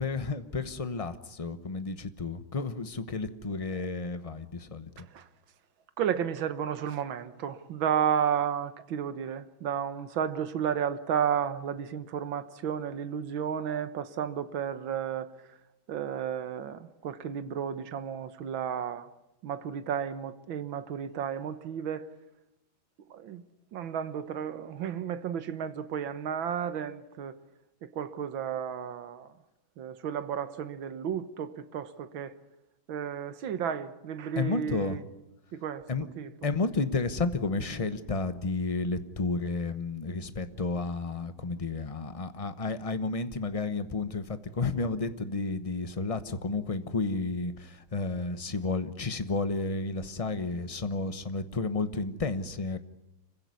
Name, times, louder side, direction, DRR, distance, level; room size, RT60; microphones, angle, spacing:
voice 1, 0.0-4.9 34.4-35.0 35.9-36.1 36.4-52.8, left 3 dB, 25° left, 0.7 m, -32 dB
voice 2, 6.0-15.3 15.9-19.1 19.4-22.1 23.1-23.4 23.7-27.4 27.8-29.3 29.8-32.3 32.9-35.0 35.5-35.9 36.2-36.3, right 8 dB, 75° right, 1.9 m, -32 dB
26.5 x 16.0 x 9.6 m
omnidirectional pair, 2.2 m